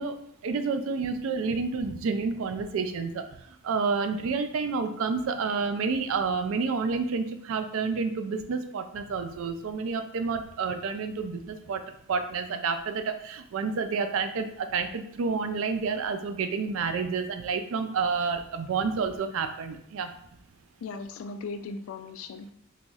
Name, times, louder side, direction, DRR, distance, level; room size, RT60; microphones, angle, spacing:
voice 1, 0.0-3.2 3.6-11.8 12.1-20.1, right 5 dB, 70° right, 7 dB, 0.4 m, -29 dB
voice 2, 20.8-22.5, left 4 dB, 70° left, 9 dB, 0.3 m, -38 dB
4.1 x 3.0 x 2.3 m, 0.70 s
head